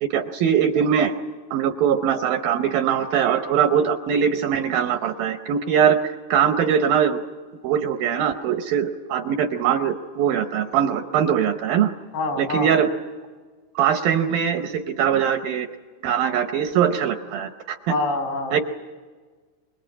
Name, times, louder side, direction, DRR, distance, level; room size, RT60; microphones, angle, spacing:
voice 1, 0.0-1.1 1.5-7.2 7.6-11.9 12.4-12.9 13.8-15.7 16.0-17.9 18.5-18.6, right 8 dB, 75° right, 7 dB, 2.2 m, -21 dB
voice 2, 12.1-12.7 17.9-18.6, left 2 dB, 75° left, 4 dB, 4.6 m, -26 dB
25.5 x 21.5 x 8.7 m, 1.5 s
omnidirectional pair, 4.9 m